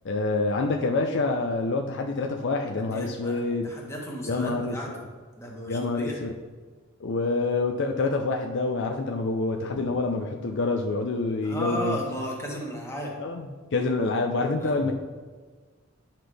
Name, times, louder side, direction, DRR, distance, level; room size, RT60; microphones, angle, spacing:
voice 1, 0.0-3.7 4.2-5.0 5.7-6.3 7.0-12.0 13.2-14.9, left 3 dB, 55° left, 3 dB, 0.5 m, -27 dB
voice 2, 2.8-4.9 5.4-6.1 11.4-13.2 14.6-14.9, equal, 15° left, -2 dB, 1.4 m, -35 dB
9.6 x 5.7 x 3.4 m, 1.4 s
head